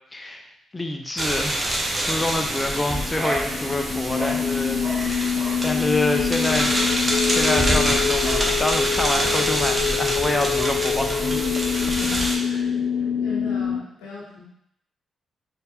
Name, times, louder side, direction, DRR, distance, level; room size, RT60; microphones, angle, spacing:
voice 1, 0.1-0.4 0.7-6.7 7.2-11.2 12.0-12.6, left 2 dB, 20° left, 3 dB, 0.8 m, -27 dB
sound 1, 1.2-12.4, right 1 dB, 35° right, 1.0 m, -26 dB
sound 2, 2.1-13.8, left 8 dB, 65° left, 0.4 m, -26 dB
voice 2, 12.4-14.4, left 4 dB, 85° left, -6 dB, 1.1 m, -39 dB
4.1 x 2.9 x 3.8 m, 0.73 s
hypercardioid pair, 45°, 0 cm